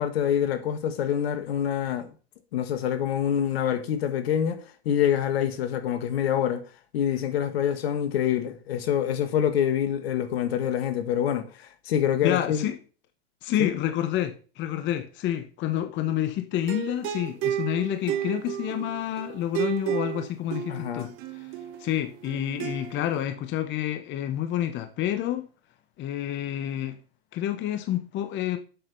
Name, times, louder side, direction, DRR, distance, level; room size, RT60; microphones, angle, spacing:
voice 1, 0.0-2.1 2.5-6.6 6.9-12.6 13.6-13.7 20.7-21.1, left 9 dB, 70° left, 1.6 m, -26 dB
voice 2, 12.2-12.8 13.4-21.5 21.8-25.5 26.0-27.0 27.3-28.6, left 11 dB, 35° left, 1.1 m, -29 dB
sound 1, 16.5-23.2, right 11 dB, 45° right, 1.3 m, -33 dB
7.8 x 6.6 x 5.3 m
hypercardioid pair, 110°, 31 cm